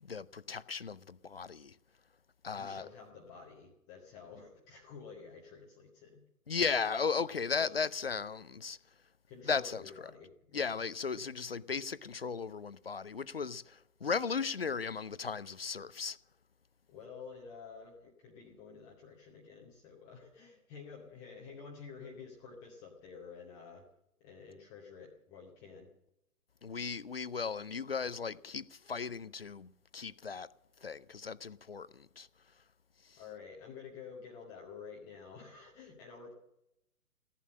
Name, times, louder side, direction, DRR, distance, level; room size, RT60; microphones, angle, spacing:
voice 1, 0.0-1.8 2.4-2.9 6.5-8.8 9.4-10.1 10.5-16.2 26.6-30.5 30.8-32.3 33.0-33.2, left 5 dB, 45° left, 0.5 m, -36 dB
voice 2, 2.5-6.2 7.6-7.9 9.3-10.8 11.1-11.2 16.9-23.9 24.2-25.9 33.2-36.3, left 5 dB, 10° left, 0.8 m, -50 dB
16.0 x 11.0 x 7.5 m
figure-of-eight pair, 135°, 45 cm